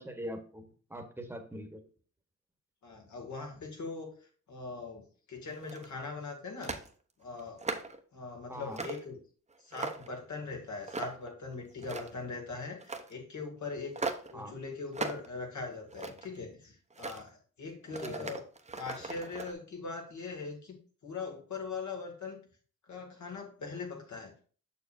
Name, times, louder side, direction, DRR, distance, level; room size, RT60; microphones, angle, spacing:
voice 1, 0.0-1.8 8.5-8.9 14.3-14.6 18.0-18.3, equal, 10° right, 5 dB, 1.2 m, -42 dB
voice 2, 2.8-6.8 7.2-7.6 8.1-9.2 9.6-14.0 14.3-18.4 18.8-20.8 21.0-22.4 22.9-24.3, left 4 dB, 70° left, 1 dB, 2.1 m, -41 dB
sound 1, 5.5-6.0 6.6-6.9 7.4-8.0 8.7-9.1 9.5-10.2 10.9-11.3 11.7-12.3 12.8-13.1 14.0-14.3 14.9-15.3 15.7-16.4 16.9-17.2 17.9-19.5, right 3 dB, 25° right, 0.8 m, -38 dB
6.7 x 6.6 x 2.6 m, 0.41 s
cardioid pair, 95°, 30 cm